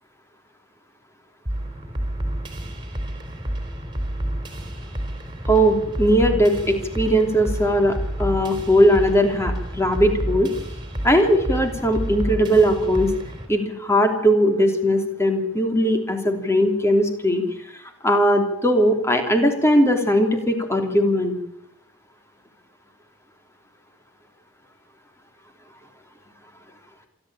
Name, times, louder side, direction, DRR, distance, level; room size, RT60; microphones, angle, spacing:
sound 1, 1.5-13.5, right 1 dB, 20° right, 3.7 m, -29 dB
voice 1, 5.5-10.5 11.0-13.1 13.5-17.4 18.0-21.3, equal, 10° left, 4 dB, 3.1 m, -19 dB
27.0 x 11.5 x 8.9 m, 0.84 s
head